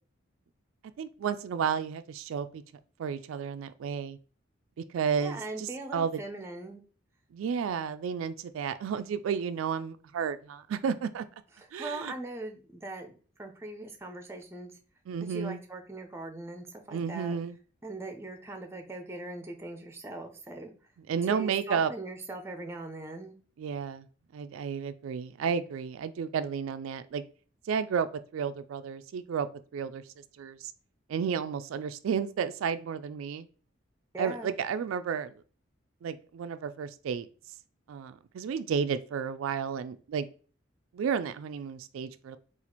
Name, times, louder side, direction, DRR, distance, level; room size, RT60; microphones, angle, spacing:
voice 1, 1.0-2.6 3.0-4.2 4.9-6.2 7.3-11.2 11.7-12.1 15.1-15.6 16.9-17.6 21.1-21.9 23.6-24.1 24.3-27.2 27.7-28.1 28.3-29.5 29.7-30.0 30.4-30.7 31.1-33.5 34.2-35.3 36.0-37.3 37.9-40.3 40.9-42.4, right 7 dB, 80° right, 12 dB, 0.3 m, -32 dB
voice 2, 5.2-6.8 11.6-14.7 15.2-17.4 17.8-20.7 21.3-23.4 34.1-34.5, right 2 dB, 10° right, 4 dB, 0.5 m, -40 dB
4.1 x 2.4 x 4.3 m, 0.39 s
head